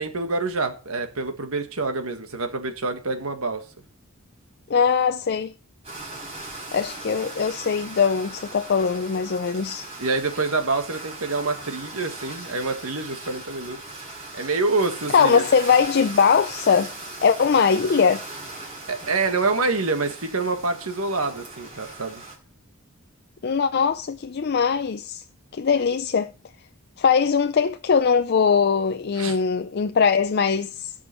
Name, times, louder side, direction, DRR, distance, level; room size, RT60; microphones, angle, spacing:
voice 1, 0.0-3.6 10.0-13.8 14.3-15.5 18.9-22.2 29.2-29.4, right 3 dB, 80° right, 1.7 m, -26 dB
voice 2, 4.7-5.5 6.7-9.9 15.1-16.9 17.2-18.2 23.4-25.2 25.5-26.3 27.0-30.9, left 6 dB, 50° left, 0.5 m, -21 dB
sound 1, 5.8-22.4, right 2 dB, 30° right, 4.6 m, -39 dB
16.5 x 6.1 x 4.4 m
head